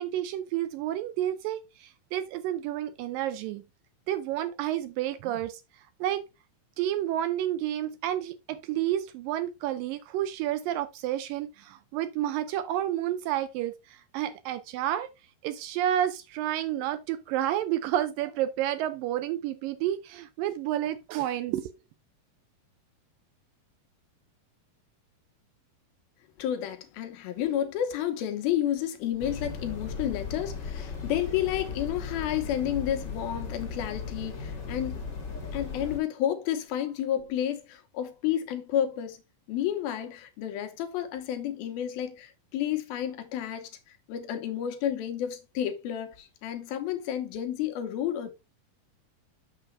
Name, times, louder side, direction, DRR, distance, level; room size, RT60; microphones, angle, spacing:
voice 1, 0.0-3.6 4.1-5.6 6.0-6.2 6.8-15.1 15.4-21.7, right 12 dB, 80° right, 2.1 m, -30 dB
voice 2, 26.4-35.0 35.5-39.2 39.5-43.7 44.1-48.3, left 10 dB, 80° left, 2.9 m, -31 dB
sound 1, 29.2-36.0, left 5 dB, 45° left, 1.5 m, -37 dB
6.9 x 6.8 x 3.4 m
omnidirectional pair, 4.3 m